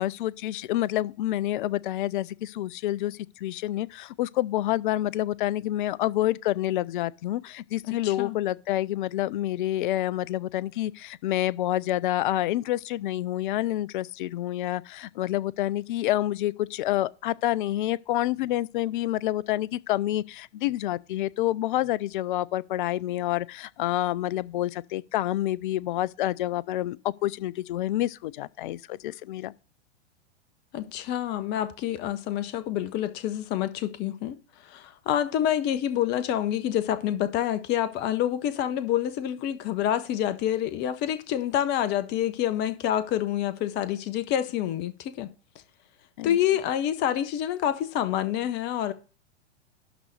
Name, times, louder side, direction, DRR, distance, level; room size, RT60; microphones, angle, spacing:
voice 1, 0.0-29.5 46.2-46.4, left 14 dB, 45° left, 0.5 m, -28 dB
voice 2, 7.9-8.4 30.7-34.4 34.6-45.3 46.2-48.9, left 11 dB, 30° left, 0.8 m, -27 dB
12.0 x 4.1 x 6.5 m
figure-of-eight pair, 100°, 35 cm